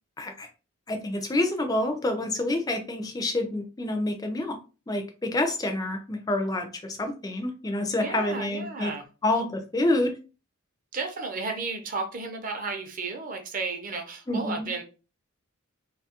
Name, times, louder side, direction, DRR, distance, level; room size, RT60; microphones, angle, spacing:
voice 1, 0.2-0.5 0.9-4.6 4.9-8.9 9.2-10.1 14.3-14.7, left 2 dB, 15° left, 5 dB, 0.3 m, -28 dB
voice 2, 8.0-9.0 10.9-14.8, right 4 dB, 40° right, 4 dB, 0.5 m, -33 dB
2.6 x 2.3 x 2.8 m, 0.33 s
head